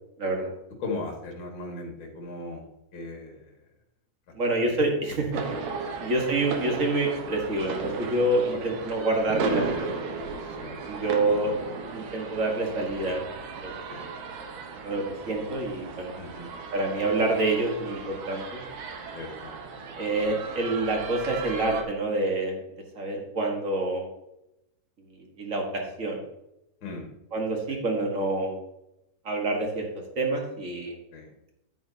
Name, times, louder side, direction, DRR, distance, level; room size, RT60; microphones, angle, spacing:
voice 1, 0.2-0.5 4.3-5.4 6.0-9.9 10.9-11.5 11.9-13.2 13.6-14.1 14.8-16.1 16.7-18.6 20.0-22.5 22.9-24.1 25.4-26.2 27.3-28.5 29.2-29.8 30.1-30.9, right 2 dB, 40° right, 1 dB, 1.2 m, -27 dB
voice 2, 0.8-2.6 2.9-3.6 4.6-4.8 6.0-6.1 8.5-8.8 10.4-10.8 11.0-11.2 13.9-14.1 16.2-16.5 19.1-19.5 26.8-27.1 27.7-27.8 31.1-31.3, left 3 dB, 45° left, 1 dB, 2.3 m, -38 dB
sound 1, 5.3-21.8, right 4 dB, 70° right, 2.4 m, -36 dB
9.9 x 9.3 x 2.8 m, 0.89 s
omnidirectional pair, 3.6 m